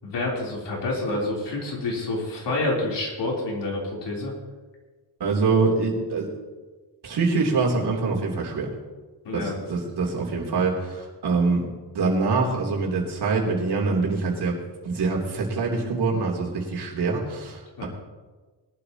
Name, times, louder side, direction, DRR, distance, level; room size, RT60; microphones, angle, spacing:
voice 1, 0.0-4.3 9.2-9.6 17.8-17.9, left 2 dB, 75° left, -3 dB, 4.0 m, -28 dB
voice 2, 5.2-6.3 7.0-8.7 9.3-11.7 11.9-14.6 14.8-17.9, right 4 dB, 65° right, -2 dB, 3.5 m, -24 dB
21.5 x 12.0 x 3.0 m, 1.3 s
wide cardioid pair, 155°, 43 cm